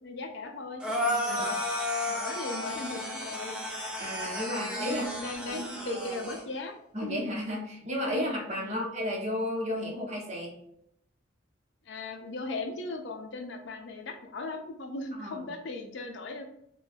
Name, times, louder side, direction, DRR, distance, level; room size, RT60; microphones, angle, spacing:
voice 1, 0.0-1.6 2.1-3.6 4.2-6.8 7.0-7.2 8.6-8.9 11.8-16.4, left 2 dB, 65° left, 4 dB, 0.5 m, -38 dB
sound 1, 0.8-6.4, left 1 dB, 5° right, 0.5 m, -33 dB
voice 2, 4.0-5.1 5.5-5.6 6.9-10.5 15.2-15.4, left 1 dB, 35° right, -1 dB, 0.8 m, -33 dB
2.6 x 2.2 x 3.3 m, 0.72 s
head